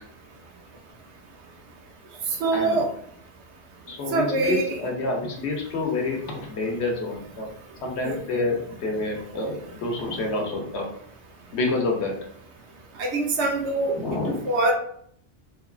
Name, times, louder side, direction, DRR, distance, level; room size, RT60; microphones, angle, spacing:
voice 1, 2.4-2.9 4.1-4.6 8.0-8.1 13.0-14.0 14.5-14.7, right 2 dB, 70° right, 0 dB, 0.9 m, -23 dB
voice 2, 3.9-7.5 7.8-10.8 11.5-12.1 13.9-14.5, left 2 dB, 70° left, 0 dB, 0.9 m, -28 dB
3.0 x 2.3 x 2.3 m, 0.65 s
omnidirectional pair, 1.2 m